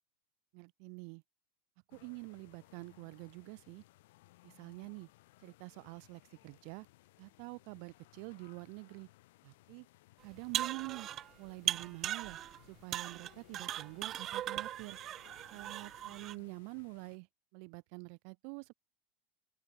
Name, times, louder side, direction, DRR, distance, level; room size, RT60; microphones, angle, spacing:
voice 1, 0.5-1.2 1.9-3.8 4.4-5.1 5.4-6.9 7.2-9.1 9.4-9.9 10.2-11.1 11.4-12.4 12.7-15.0 15.5-17.3 17.5-18.7, right 40 dB or more, 60° right, 1.8 m, -47 dB
sound 1, 1.9-17.2, left 19 dB, 75° left, 7.6 m, -63 dB
sound 2, 10.3-11.3 11.7-12.6 12.9-16.3, right 12 dB, 35° right, 0.3 m, -38 dB
open air
supercardioid pair, 130°, 0 cm